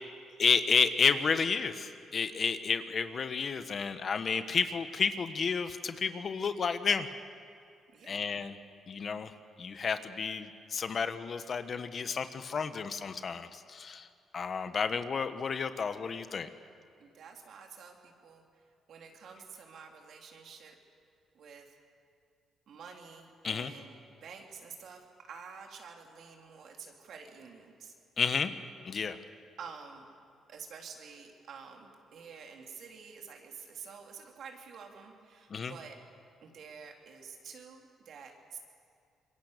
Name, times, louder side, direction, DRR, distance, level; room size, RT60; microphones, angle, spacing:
voice 1, 0.4-7.1 8.1-8.5 8.9-9.3 9.6-14.1 14.3-16.5 23.4-23.7 28.2-28.5 28.8-29.2 35.5-35.7, left 5 dB, 45° left, 10 dB, 1.3 m, -31 dB
voice 2, 7.9-8.2 17.0-18.4 18.9-20.8 21.3-21.7 22.7-27.9 29.1-29.3 29.6-30.1 30.5-36.0 36.4-38.6, right 6 dB, 65° right, 2 dB, 3.5 m, -49 dB
26.5 x 22.5 x 6.8 m, 2.4 s
cardioid pair, 90°, 0 cm